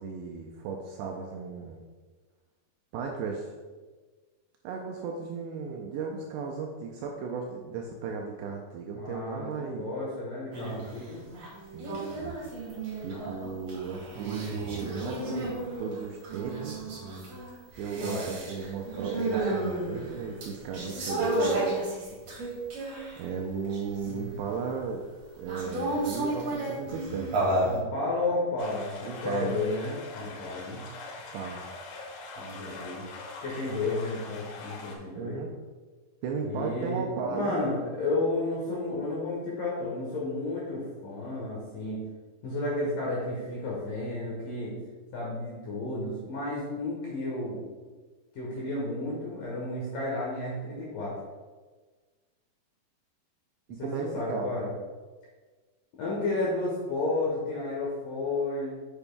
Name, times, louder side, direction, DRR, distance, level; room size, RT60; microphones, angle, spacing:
voice 1, 0.0-1.8 2.9-3.5 4.6-9.9 11.7-12.3 13.0-16.9 17.8-21.8 23.2-25.0 25.4-27.3 29.0-29.6 31.3-31.7 35.2-35.5 36.2-37.6 53.7-54.5, right 5 dB, 85° right, 0 dB, 2.5 m, -35 dB
voice 2, 9.0-11.2 13.1-13.2 14.7-14.9 18.0-18.3 27.6-30.8 32.4-33.1 33.4-35.4 36.4-42.0 42.4-44.7 45.1-47.6 48.3-51.1 53.8-54.7 56.0-58.8, left 2 dB, 70° left, -5 dB, 2.1 m, -32 dB
sound 1, 10.5-11.0 11.3-23.2 23.6-24.6 25.5-27.8, right 2 dB, 55° right, 1.9 m, -32 dB
sound 2, 28.6-35.0, left 3 dB, 90° left, 3.3 m, -43 dB
7.0 x 6.8 x 2.2 m, 1.4 s
omnidirectional pair, 5.3 m